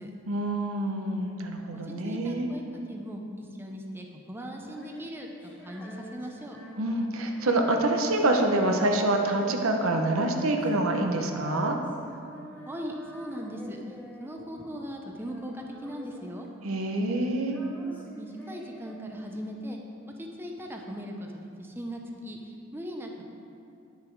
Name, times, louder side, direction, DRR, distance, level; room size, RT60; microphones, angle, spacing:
voice 1, 0.3-2.5 6.8-11.8 16.6-17.6, right 2 dB, 75° right, 3 dB, 0.9 m, -26 dB
voice 2, 1.7-6.6 12.7-16.5 18.1-19.8 20.2-23.2, equal, 10° right, 1 dB, 0.7 m, -39 dB
Female singing, 4.6-14.9 15.2-16.9 17.1-19.8, left 1 dB, 10° left, 1.5 m, -48 dB
10.0 x 6.9 x 4.6 m, 2.5 s
head